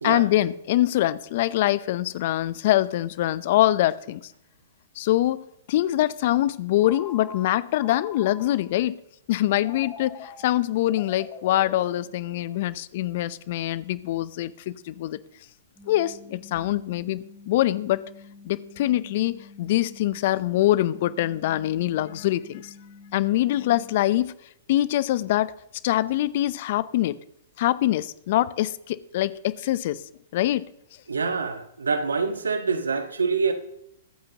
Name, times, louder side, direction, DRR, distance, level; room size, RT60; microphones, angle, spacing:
voice 1, 0.0-4.3 5.0-9.0 9.3-15.2 15.9-18.0 18.4-22.7 23.1-24.3 24.7-25.5 25.8-27.2 27.6-30.0 30.3-30.7, left 14 dB, 55° left, 0.7 m, -24 dB
Telephone, 6.8-8.8 9.6-12.7, left 6 dB, 30° left, 2.1 m, -44 dB
sound 1, 15.7-24.1, left 4 dB, 10° left, 5.1 m, -48 dB
voice 2, 31.1-33.5, right 4 dB, 85° right, 1.4 m, -25 dB
23.5 x 8.9 x 2.9 m
hypercardioid pair, 115°, 0 cm